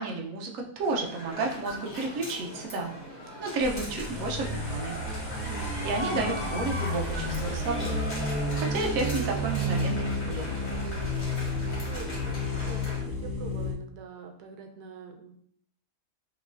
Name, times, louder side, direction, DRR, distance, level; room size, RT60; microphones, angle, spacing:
voice 1, 0.0-2.9 3.4-5.0 5.8-10.7, right 3 dB, 65° right, 0 dB, 1.0 m, -32 dB
sound 1, 0.8-13.0, equal, 30° left, 1.6 m, -38 dB
sound 2, 3.6-13.7, left 1 dB, 50° right, 1.5 m, -31 dB
voice 2, 3.7-4.0 5.4-5.8 11.8-15.4, right 5 dB, 85° right, 4 dB, 1.2 m, -45 dB
5.8 x 3.2 x 2.5 m, 0.64 s
omnidirectional pair, 1.7 m